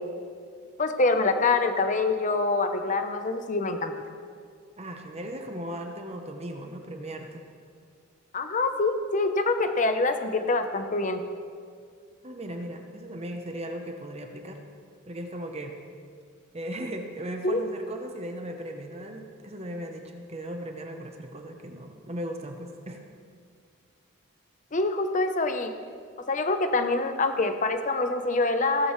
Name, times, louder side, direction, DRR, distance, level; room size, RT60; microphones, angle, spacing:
voice 1, 0.8-3.9 8.3-11.2 17.4-17.6 24.7-25.7 26.3-28.9, left 3 dB, 35° left, 7 dB, 0.8 m, -25 dB
voice 2, 4.8-7.5 12.2-14.6 15.1-15.8 16.5-23.0, right 1 dB, 30° right, 4 dB, 0.8 m, -37 dB
16.5 x 13.0 x 3.2 m, 2.2 s
head